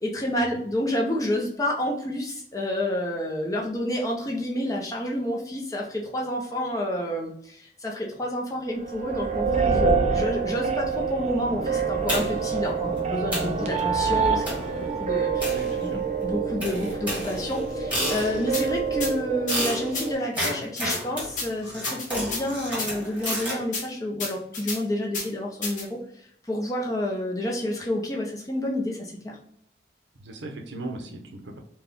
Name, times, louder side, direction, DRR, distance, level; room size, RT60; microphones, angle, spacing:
voice 1, 0.0-15.6 15.9-26.0 26.5-29.4, left 1 dB, 20° left, -1 dB, 0.7 m, -29 dB
sound 1, 8.8-20.1, right 5 dB, 40° right, 0.5 m, -27 dB
sound 2, 12.1-12.6 13.0-13.1 13.3-13.6 14.5-14.8 15.4-16.1 16.6-18.6 19.5-23.6, equal, 10° right, 1.4 m, -31 dB
voice 2, 15.4-16.0 30.2-31.6, right 2 dB, 80° right, 3 dB, 0.7 m, -38 dB
sound 3, 18.5-18.6 19.0-19.1 19.5-19.6 19.9-20.1 20.4-21.0 21.4-21.5 21.8-22.4 22.8-22.9 23.3-23.4 23.7-23.8 24.2-24.8 25.1-25.3 25.6-25.8, left 3 dB, 45° left, 0.9 m, -30 dB
4.3 x 2.3 x 3.5 m, 0.66 s
head